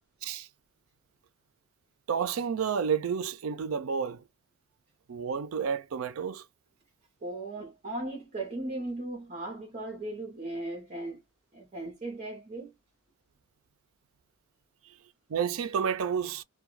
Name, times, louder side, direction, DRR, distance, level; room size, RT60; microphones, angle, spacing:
voice 1, 2.1-4.2 5.1-6.4 14.9-15.0 15.3-16.4, right 7 dB, 70° right, 0.4 m, -30 dB
voice 2, 7.2-11.2 11.5-12.7, right 2 dB, 35° right, 0.7 m, -37 dB
2.2 x 2.2 x 3.0 m
head